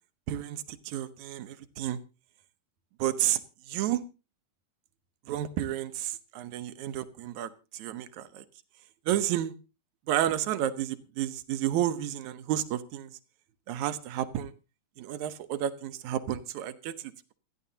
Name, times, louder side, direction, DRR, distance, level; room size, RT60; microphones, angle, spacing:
voice 1, 0.3-2.0 3.0-3.4 3.7-4.0 5.3-8.4 9.1-9.5 10.1-13.1 13.7-14.5 15.0-17.3, right 12 dB, 70° right, 12 dB, 2.1 m, -31 dB
27.5 x 10.5 x 2.8 m, 0.31 s
omnidirectional pair, 4.0 m